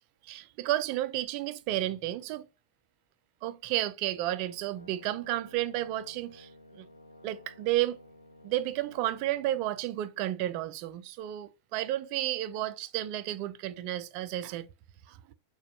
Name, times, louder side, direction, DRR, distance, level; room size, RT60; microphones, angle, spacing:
voice 1, 0.2-2.5 3.4-6.9 7.2-8.0 8.4-14.7 15.1-15.2, right 14 dB, 45° right, 0.4 m, -32 dB
Brass instrument, 4.2-9.7, left 1 dB, 85° left, 0.4 m, -54 dB
6.6 x 2.3 x 2.7 m
figure-of-eight pair, 90°, 0 cm